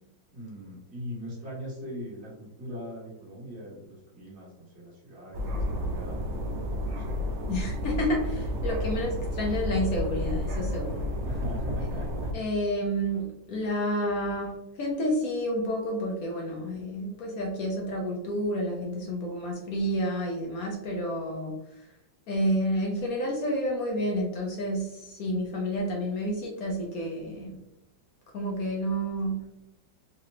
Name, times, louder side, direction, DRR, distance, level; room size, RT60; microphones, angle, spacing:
voice 1, 0.3-7.2 10.9-12.3, equal, 35° right, -5 dB, 1.6 m, -40 dB
sound 1, 5.3-12.3, equal, 80° right, 0.6 m, -31 dB
voice 2, 7.5-11.0 12.3-21.5 22.3-27.6 28.3-29.4, equal, 60° left, 0 dB, 1.0 m, -30 dB
3.8 x 3.2 x 2.8 m, 0.84 s
omnidirectional pair, 2.0 m